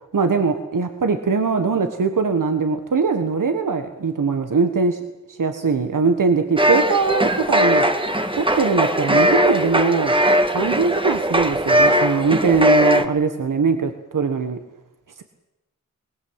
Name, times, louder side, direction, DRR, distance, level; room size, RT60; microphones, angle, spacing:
voice 1, 0.1-5.0 5.3-7.9 8.3-10.1 10.5-14.6, right 4 dB, 75° right, 7 dB, 1.4 m, -21 dB
sound 1, 6.6-13.1, equal, 15° right, 1.6 m, -19 dB
23.5 x 20.0 x 8.1 m, 1.1 s
wide cardioid pair, 70°, 32 cm